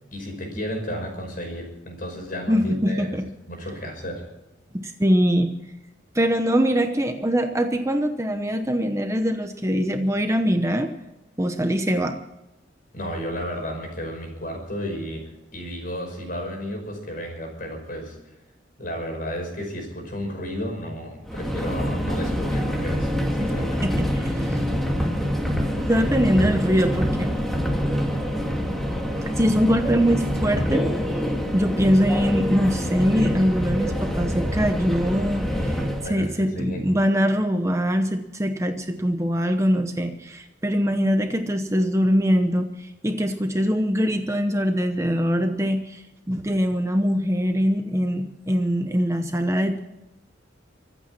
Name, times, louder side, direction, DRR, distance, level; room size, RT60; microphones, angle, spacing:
voice 1, 0.1-3.1 3.5-4.2 12.9-18.2 18.8-24.0 25.9-26.1 36.0-36.9, equal, 45° left, 3 dB, 5.5 m, -33 dB
voice 2, 2.5-3.3 4.7-5.5 6.1-10.9 11.4-12.2 23.4-23.5 23.8-24.6 25.9-27.3 29.4-30.9 31.5-35.7 36.0-49.8, equal, 15° right, 6 dB, 0.9 m, -23 dB
Subway metro underground, 21.3-36.1, equal, ahead, 2.0 m, -25 dB
24.5 x 8.7 x 6.0 m, 0.97 s
head